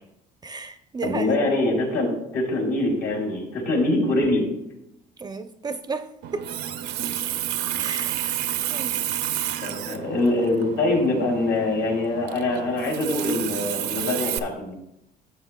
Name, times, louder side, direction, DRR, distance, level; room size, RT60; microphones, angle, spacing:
voice 1, 0.4-1.3 5.2-6.5 7.8-8.2 8.7-9.0, right 4 dB, 25° right, 9 dB, 0.4 m, -33 dB
voice 2, 1.0-4.5 9.6-14.7, left 2 dB, 75° left, -1 dB, 3.0 m, -24 dB
Water tap faucet, 6.2-14.4, right 11 dB, 80° right, 0.5 m, -30 dB
11.5 x 7.7 x 2.2 m, 0.84 s
cardioid pair, 110°, 17 cm